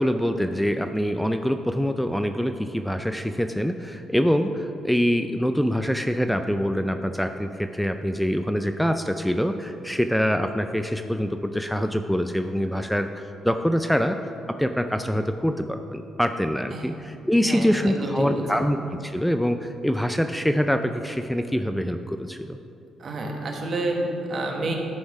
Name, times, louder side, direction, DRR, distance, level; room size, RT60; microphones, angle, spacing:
voice 1, 0.0-14.2 14.6-18.8 19.0-22.6, equal, ahead, 7 dB, 0.3 m, -25 dB
voice 2, 17.4-18.4 23.0-24.8, right 2 dB, 50° right, 1 dB, 1.3 m, -29 dB
11.5 x 4.3 x 4.8 m, 2.7 s
cardioid pair, 90°, 0 cm